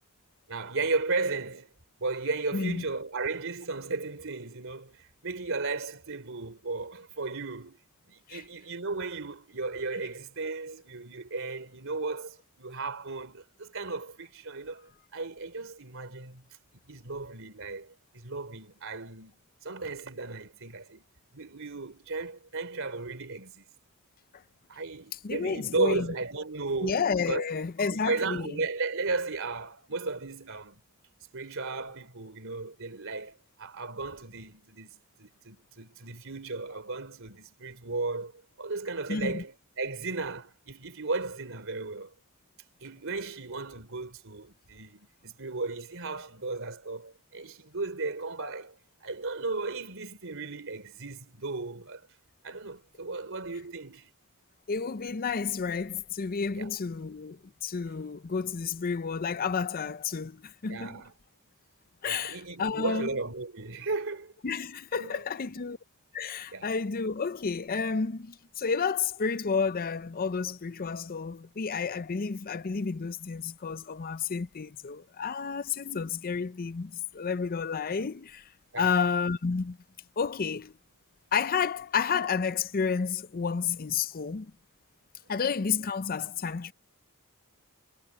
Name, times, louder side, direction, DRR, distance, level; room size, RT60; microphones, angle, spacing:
voice 1, 0.5-1.7 2.0-7.8 8.1-16.5 16.7-19.4 19.6-21.0 21.3-23.6 24.7-27.4 27.9-30.8 31.3-38.3 38.6-42.1 42.8-52.0 52.4-54.1 56.5-56.8 60.7-61.1 62.0-64.3 64.9-65.2 66.5-66.7 78.7-79.0, right 3 dB, 65° right, 3.5 m, -35 dB
voice 2, 2.5-2.8 8.3-8.4 25.1-26.1 26.8-28.6 39.1-39.4 54.7-61.0 62.0-63.1 64.4-65.8 66.1-78.5 78.8-79.8 80.2-80.7 81.3-84.5 85.3-86.7, left 5 dB, 40° left, 0.5 m, -31 dB
head